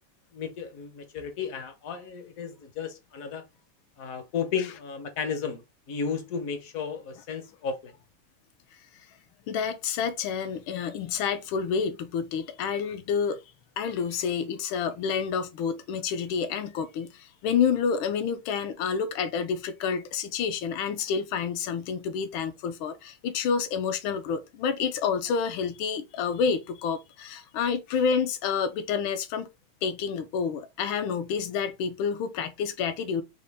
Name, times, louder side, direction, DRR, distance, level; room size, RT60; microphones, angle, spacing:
voice 1, 0.3-3.4 4.0-7.9, left 6 dB, 60° left, 0.9 m, -34 dB
voice 2, 9.5-13.4 13.8-29.5 29.8-33.2, left 6 dB, 85° left, 1.4 m, -29 dB
5.4 x 2.1 x 3.3 m
omnidirectional pair, 2.2 m